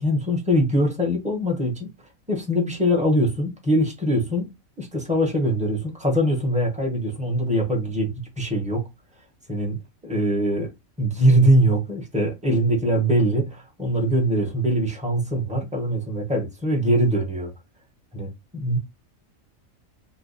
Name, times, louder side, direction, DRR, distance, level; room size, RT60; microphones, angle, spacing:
voice 1, 0.0-1.9 2.3-4.5 4.8-8.9 9.5-9.8 10.0-10.7 11.0-17.5 18.1-18.8, equal, 5° right, 0.9 m, -22 dB
3.1 x 2.3 x 3.8 m
omnidirectional pair, 1.5 m